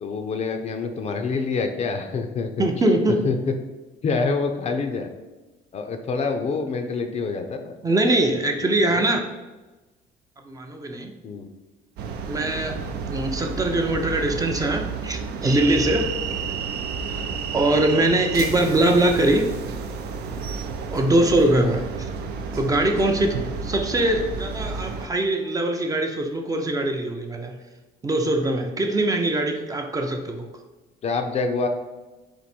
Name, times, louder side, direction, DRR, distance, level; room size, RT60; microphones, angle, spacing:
voice 1, 0.0-2.7 3.2-3.4 4.0-5.1 5.7-7.7 8.6-9.1 11.2-11.5 31.0-31.7, left 4 dB, 40° left, 6 dB, 0.5 m, -26 dB
voice 2, 2.6-3.2 7.8-9.2 10.5-11.1 12.3-12.8 13.1-16.2 17.5-19.5 20.9-22.1 22.5-27.6 28.0-30.5, right 1 dB, 20° right, 4 dB, 0.5 m, -22 dB
sound 1, 12.0-25.1, right 5 dB, 75° right, 0.5 m, -31 dB
4.6 x 2.6 x 4.2 m, 1.2 s
cardioid pair, 110°, 17 cm